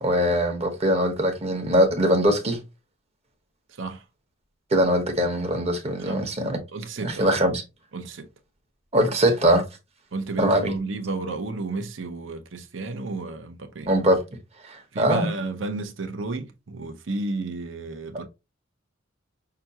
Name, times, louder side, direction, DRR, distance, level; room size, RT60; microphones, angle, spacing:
voice 1, 0.0-2.6 4.7-6.6 7.0-7.6 8.9-9.6 10.4-10.8 13.9-14.2 14.7-15.3, equal, 30° right, 1.0 m, -22 dB
voice 2, 6.0-6.3 6.7-7.3 7.9-8.3 10.1-13.9 14.9-18.3, right 3 dB, 70° right, 0.7 m, -32 dB
5.9 x 2.3 x 2.8 m
head